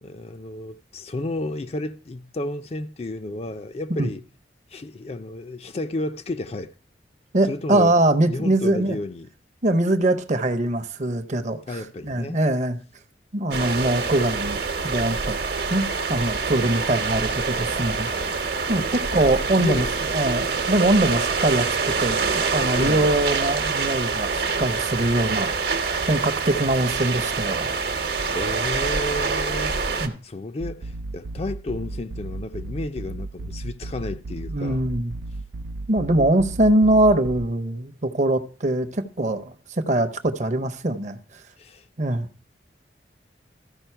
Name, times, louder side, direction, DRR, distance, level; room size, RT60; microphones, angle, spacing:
voice 1, 0.0-4.2 4.7-6.7 7.5-7.9 8.3-9.3 11.7-12.4 15.8-15.9 18.9-19.0 19.6-20.0 22.8-23.2 28.3-34.8 41.6-41.8, left 2 dB, 35° left, 0.4 m, -32 dB
voice 2, 7.3-9.0 9.6-12.8 13.3-14.6 14.8-18.1 18.7-19.9 20.1-22.2 22.5-25.5 25.8-27.8 30.0-30.1 34.5-35.2 35.9-41.2 42.0-42.3, right 1 dB, 40° right, 0.7 m, -22 dB
sound 1, 13.5-30.1, right 4 dB, 60° right, 1.0 m, -26 dB
sound 2, 30.6-37.4, right 2 dB, 85° right, 0.4 m, -35 dB
14.0 x 5.2 x 4.5 m
head